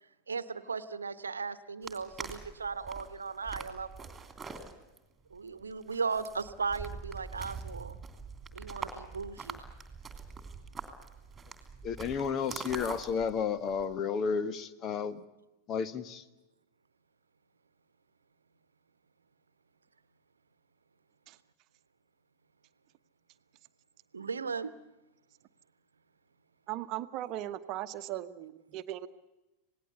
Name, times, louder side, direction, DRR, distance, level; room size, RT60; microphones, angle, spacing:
voice 1, 0.3-4.1 5.3-8.0 8.5-9.6 24.1-24.7, right 5 dB, 75° right, 15 dB, 1.1 m, -37 dB
sound 1, 1.8-13.9, right 5 dB, 15° right, 3.1 m, -44 dB
voice 2, 11.8-15.2 15.7-16.2, left 6 dB, 30° left, 14 dB, 1.4 m, -32 dB
voice 3, 26.7-29.1, right 13 dB, 40° right, 12 dB, 1.1 m, -38 dB
27.0 x 19.0 x 8.3 m, 1.0 s
figure-of-eight pair, 90°, 0 cm